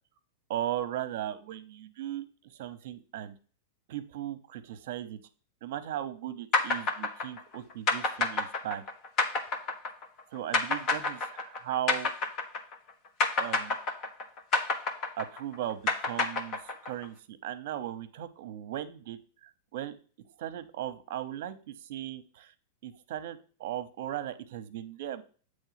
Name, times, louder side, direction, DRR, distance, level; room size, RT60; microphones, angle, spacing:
voice 1, 0.5-3.3 3.9-5.2 5.6-8.8 10.3-12.1 13.4-13.8 15.2-20.0 20.4-22.5 22.8-25.2, right 12 dB, 60° right, 11 dB, 0.8 m, -37 dB
sound 1, 6.5-12.9 13.2-17.0, left 3 dB, 35° left, 1.3 m, -28 dB
8.1 x 3.2 x 5.7 m, 0.40 s
hypercardioid pair, 135°, 0 cm